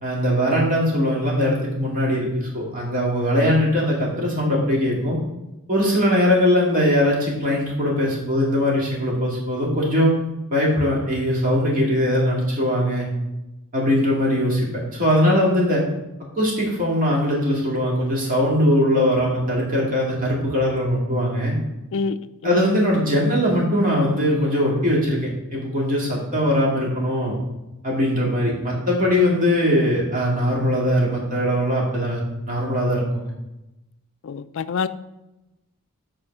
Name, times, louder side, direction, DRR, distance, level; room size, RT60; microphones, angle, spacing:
voice 1, 0.0-5.2 5.7-10.1 10.5-13.1 13.7-15.8 16.4-21.5 22.4-27.4 27.8-33.3, equal, 40° right, 2.1 m, -21 dB
voice 2, 21.9-22.6 34.2-34.9, left 5 dB, 60° left, 0.4 m, -26 dB
8.0 x 4.4 x 5.3 m
head